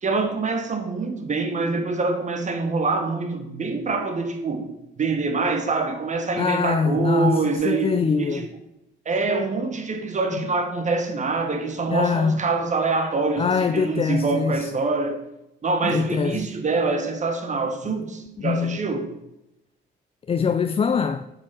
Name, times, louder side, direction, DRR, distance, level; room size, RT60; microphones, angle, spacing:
voice 1, 0.0-4.7 5.0-8.5 9.0-15.2 15.6-19.1, right 3 dB, 35° right, 1.4 m, -25 dB
voice 2, 6.4-8.4 11.9-12.4 13.4-14.7 15.8-16.4 18.4-18.8 20.3-21.2, left 5 dB, 30° left, 0.4 m, -23 dB
7.2 x 5.0 x 6.2 m
cardioid pair, 90°, 20 cm